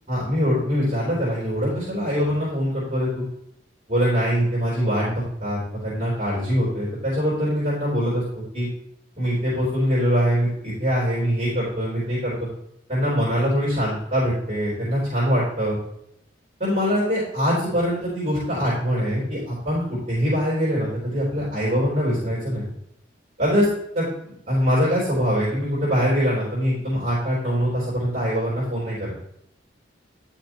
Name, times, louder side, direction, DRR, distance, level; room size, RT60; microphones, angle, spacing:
voice 1, 0.1-3.2 3.9-8.7 9.2-12.5 12.9-15.8 16.6-22.6 23.4-23.7 23.9-29.1, equal, 30° right, -8 dB, 3.7 m, -23 dB
10.5 x 6.6 x 3.0 m, 0.74 s
head